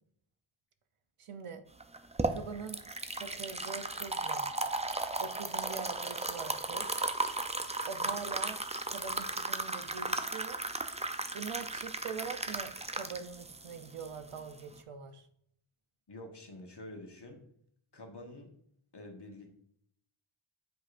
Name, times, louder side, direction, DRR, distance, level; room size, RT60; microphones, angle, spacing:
voice 1, 1.2-1.6 2.3-2.8 3.2-4.5 5.2-6.9 7.9-8.6 8.9-10.7 11.3-15.3, right 5 dB, 85° right, 9 dB, 0.7 m, -43 dB
sound 1, 1.8-14.8, right 2 dB, 15° right, 0.5 m, -35 dB
voice 2, 16.1-17.4 17.9-18.5 18.9-19.6, left 1 dB, 55° left, 2 dB, 1.4 m, -48 dB
7.8 x 4.9 x 2.5 m, 0.68 s
wide cardioid pair, 45°, 50 cm